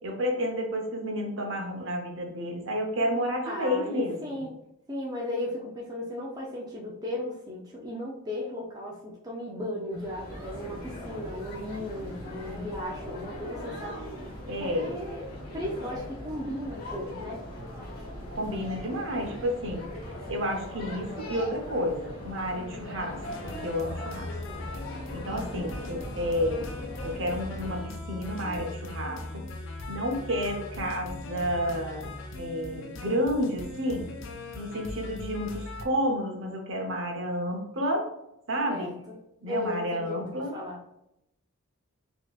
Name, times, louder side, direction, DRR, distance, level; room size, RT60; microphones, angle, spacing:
voice 1, 0.0-4.4 14.5-15.0 18.3-19.9 20.3-24.3 25.1-26.7 27.0-29.5 29.9-34.1 34.5-38.1 38.5-38.9 39.4-40.5, equal, 60° right, 2 dB, 0.7 m, -31 dB
voice 2, 3.4-4.5 4.9-14.0 14.6-17.4 25.2-25.9 38.7-38.9 39.5-40.8, left 1 dB, 15° right, -3 dB, 0.4 m, -36 dB
sound 1, 9.9-27.9, left 1 dB, 45° left, 0.9 m, -40 dB
sound 2, 23.2-35.8, left 2 dB, 60° left, 0.5 m, -39 dB
4.1 x 2.8 x 2.3 m, 0.83 s
head